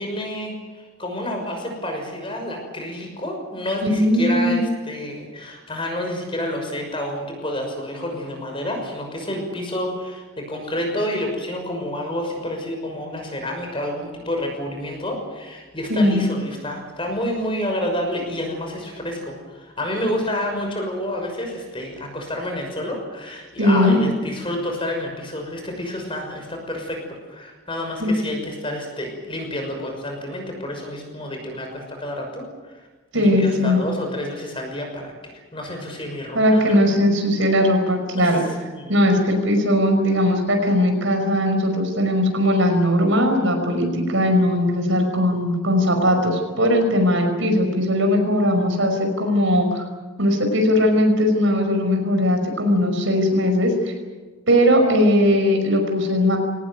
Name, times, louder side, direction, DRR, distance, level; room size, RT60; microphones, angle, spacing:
voice 1, 0.0-27.0 27.3-32.8 33.1-35.1 35.5-36.8 38.2-38.3 38.7-38.9, left 1 dB, 25° left, 3 dB, 6.1 m, -29 dB
voice 2, 3.9-4.6 15.9-16.2 23.6-24.0 28.0-28.1 33.1-33.8 36.3-38.4 38.9-49.9 50.2-53.9 54.5-56.4, left 1 dB, 65° right, 4 dB, 5.6 m, -19 dB
23.5 x 19.0 x 9.3 m, 1.3 s
head